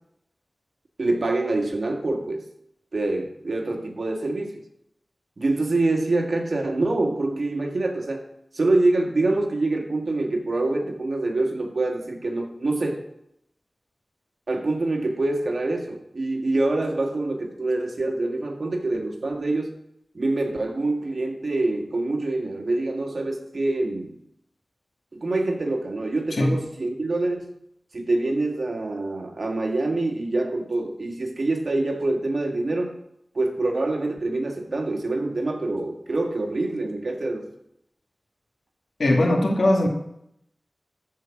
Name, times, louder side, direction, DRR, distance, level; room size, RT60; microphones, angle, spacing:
voice 1, 1.0-2.4 2.9-4.5 5.4-8.3 8.5-13.0 14.5-19.7 20.1-24.2 25.1-27.5 27.9-33.0 33.3-37.5, right 2 dB, 65° right, 3 dB, 2.0 m, -25 dB
voice 2, 39.0-39.9, left 1 dB, 85° left, 1 dB, 2.2 m, -19 dB
14.0 x 5.0 x 7.3 m, 0.76 s
wide cardioid pair, 60°, 0 cm